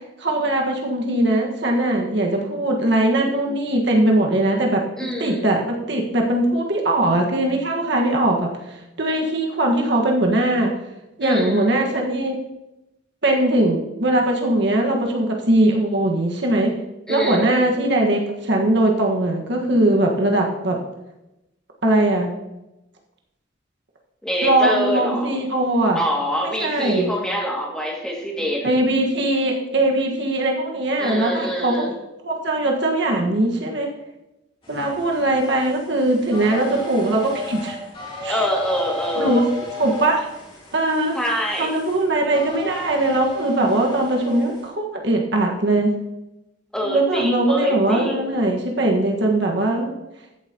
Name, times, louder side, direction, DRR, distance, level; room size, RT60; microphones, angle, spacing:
voice 1, 0.2-10.7 11.2-12.4 13.2-16.7 17.1-20.8 21.8-22.3 24.4-26.0 26.6-27.1 28.6-31.7 32.2-33.9 34.7-37.8 38.2-38.4 39.2-39.4 39.8-40.3 40.7-41.2 41.6-45.9 46.8-49.9, right 1 dB, 65° right, 0 dB, 1.5 m, -20 dB
voice 2, 5.0-5.5 11.2-11.7 17.1-17.6 24.2-25.3 25.9-28.8 31.0-31.9 38.3-39.4 41.1-41.7 46.7-48.4, equal, 5° left, -2 dB, 2.1 m, -25 dB
sound 1, 34.6-44.7, left 1 dB, 30° left, 2.8 m, -35 dB
14.0 x 8.1 x 2.9 m, 0.94 s
head